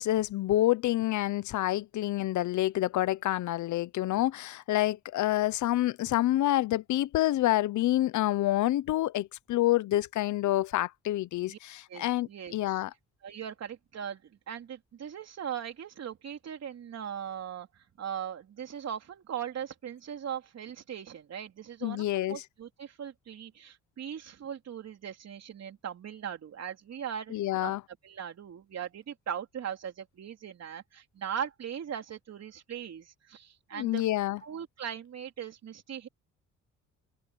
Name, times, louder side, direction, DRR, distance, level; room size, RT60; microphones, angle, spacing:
voice 1, 0.0-12.9 21.8-22.4 27.3-27.8 33.7-34.4, left 15 dB, 75° left, 0.8 m, -28 dB
voice 2, 11.9-12.8 13.2-27.7 28.0-34.0 34.4-36.1, right 8 dB, 60° right, 3.6 m, -39 dB
cardioid pair, 90°, 30 cm